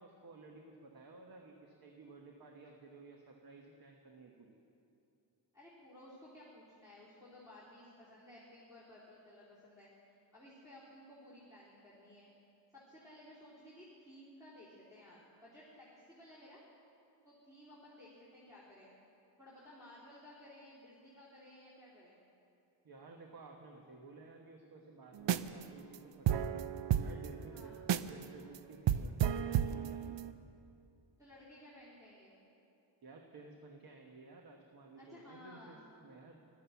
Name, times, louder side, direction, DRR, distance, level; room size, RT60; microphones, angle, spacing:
voice 1, 0.0-4.6 22.8-26.6 26.9-27.7 28.1-30.2 33.0-35.8 36.0-36.4, right 3 dB, 50° right, 2 dB, 1.3 m, -54 dB
voice 2, 5.5-12.3 12.7-16.6 17.2-18.9 19.4-22.2 27.5-27.8 31.2-32.3 34.9-35.9, left 1 dB, 5° right, -11 dB, 3.4 m, -56 dB
sound 1, 25.2-25.6 25.9-26.0 26.3-28.2 28.6-28.7 28.9-30.3, right 10 dB, 70° right, 0.6 m, -32 dB
15.0 x 12.0 x 7.1 m, 2.7 s
wide cardioid pair, 115°, 45 cm